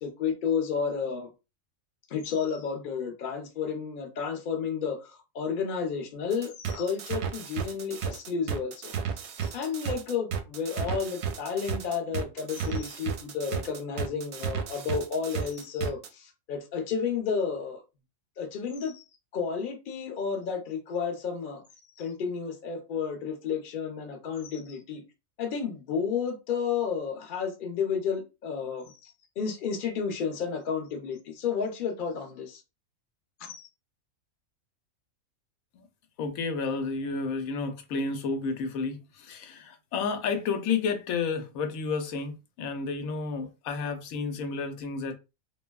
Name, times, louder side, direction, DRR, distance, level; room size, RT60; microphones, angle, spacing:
voice 1, 0.0-1.3 2.1-8.9 9.4-17.8 18.4-19.0 19.3-21.6 22.0-25.0 25.4-32.6 33.4-33.7, left 6 dB, 50° left, 0.7 m, -32 dB
sound 1, 6.3-16.1, right 7 dB, 65° right, 0.7 m, -33 dB
voice 2, 36.2-45.1, left 4 dB, 90° left, 1.0 m, -31 dB
3.3 x 2.1 x 2.2 m
omnidirectional pair, 1.4 m